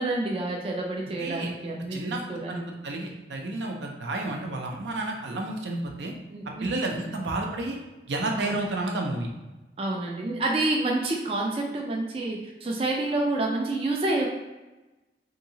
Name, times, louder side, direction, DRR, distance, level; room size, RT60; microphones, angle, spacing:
voice 1, 0.0-2.6 6.3-6.7 7.0-7.2 8.3-8.5 9.8-14.3, right 2 dB, 30° right, -1 dB, 0.3 m, -28 dB
voice 2, 1.2-1.5 1.9-2.2 2.5-6.1 6.6-7.8 8.1-9.3, right 2 dB, 85° right, 1 dB, 0.5 m, -31 dB
2.8 x 2.7 x 2.7 m, 1.1 s
head